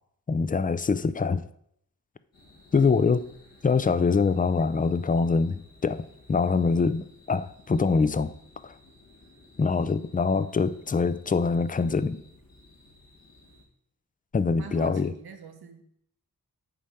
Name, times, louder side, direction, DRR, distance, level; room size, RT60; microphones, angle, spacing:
voice 1, 0.3-1.4 2.7-3.3 3.6-8.3 8.6-8.7 9.6-12.2 14.3-15.1, left 4 dB, 25° left, 0.4 m, -24 dB
sound 1, 2.3-13.6, left 2 dB, 70° left, 2.5 m, -56 dB
voice 2, 14.4-15.8, right 6 dB, 85° right, 1.0 m, -43 dB
8.7 x 3.3 x 5.6 m
wide cardioid pair, 60°, 37 cm